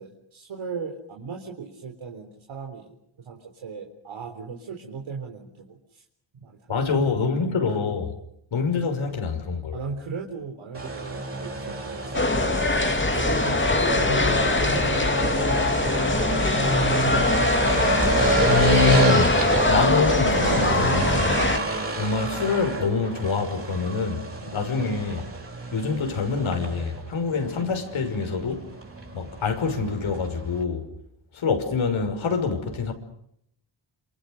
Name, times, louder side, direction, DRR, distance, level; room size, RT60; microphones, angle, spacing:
voice 1, 0.0-6.0 6.3-7.5 9.7-12.5 13.1-15.6 16.1-17.3 19.5-19.8 24.5-24.8, right 5 dB, 75° right, 4.2 m, -38 dB
voice 2, 6.7-8.1 8.5-9.8 18.5-21.4 22.0-25.2 25.7-28.6 29.1-30.9 31.3-32.9, left 4 dB, 80° left, 6.1 m, -25 dB
sound 1, 10.7-30.6, right 2 dB, 30° right, 7.1 m, -28 dB
sound 2, 12.1-21.6, left 3 dB, 25° left, 2.5 m, -23 dB
29.0 x 27.0 x 6.7 m
cardioid pair, 85°, 47 cm